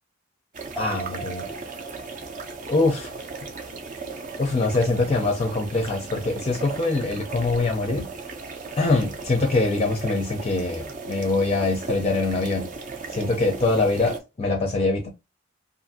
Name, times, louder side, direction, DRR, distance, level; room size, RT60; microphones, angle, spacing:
sound 1, 0.5-14.2, right 4 dB, 40° right, 0.5 m, -36 dB
voice 1, 0.8-1.5 2.7-3.1 4.4-8.1 8.8-12.7 13.1-15.1, left 3 dB, 30° left, 0.5 m, -23 dB
sound 2, 0.8-4.5 4.8-4.9, right 2 dB, ahead, 0.8 m, -41 dB
2.6 x 2.5 x 2.6 m
head